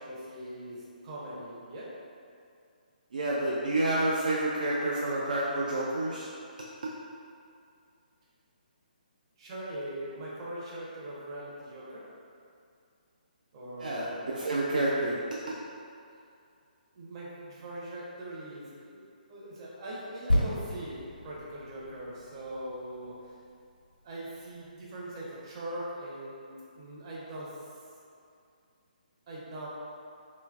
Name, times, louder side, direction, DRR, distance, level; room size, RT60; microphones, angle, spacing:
voice 1, 0.0-1.9 9.4-12.1 13.5-14.3 16.9-19.0 19.3-23.3 24.0-27.6 29.3-29.7, right 1 dB, 35° right, -6 dB, 0.7 m, -41 dB
voice 2, 3.1-6.3 13.8-15.5, right 1 dB, 60° right, -5 dB, 0.4 m, -29 dB
sound 1, 20.3-23.9 24.5-24.6, left 1 dB, 90° left, 0.9 m, -32 dB
3.1 x 3.0 x 2.4 m, 2.4 s
figure-of-eight pair, 140°, 5 cm